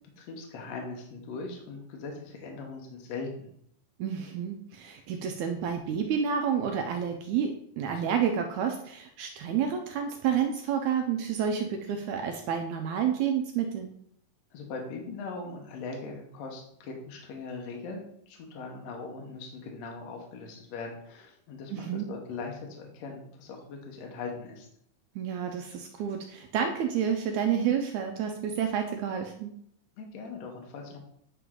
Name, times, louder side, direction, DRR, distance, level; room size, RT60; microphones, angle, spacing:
voice 1, 0.2-3.5 14.5-24.7 30.0-31.0, left 4 dB, 65° left, 1 dB, 1.9 m, -40 dB
voice 2, 4.0-13.9 21.7-22.1 25.2-29.5, right 8 dB, 80° right, 4 dB, 1.8 m, -29 dB
9.4 x 3.3 x 3.7 m, 0.67 s
omnidirectional pair, 3.8 m